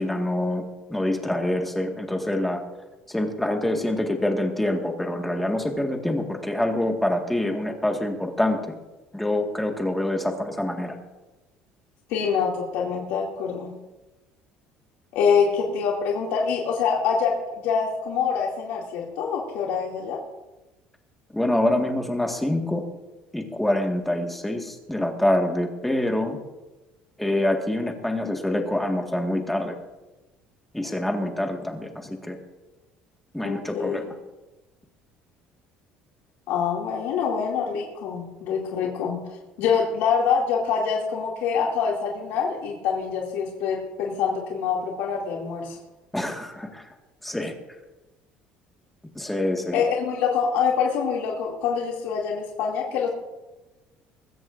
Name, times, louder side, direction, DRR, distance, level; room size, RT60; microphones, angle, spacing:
voice 1, 0.0-2.6 3.1-8.7 9.1-11.0 21.3-22.8 23.3-26.4 27.2-29.7 30.7-32.4 33.3-34.0 46.1-46.8 47.2-47.5 49.1-49.8, left 1 dB, 5° left, 2 dB, 1.7 m, -26 dB
voice 2, 12.1-13.7 15.1-17.4 17.6-20.2 33.4-34.1 36.5-39.2 39.6-45.8 49.7-53.1, left 6 dB, 80° left, -2 dB, 2.5 m, -25 dB
21.0 x 15.5 x 2.6 m, 1.1 s
cardioid pair, 165°, 4 cm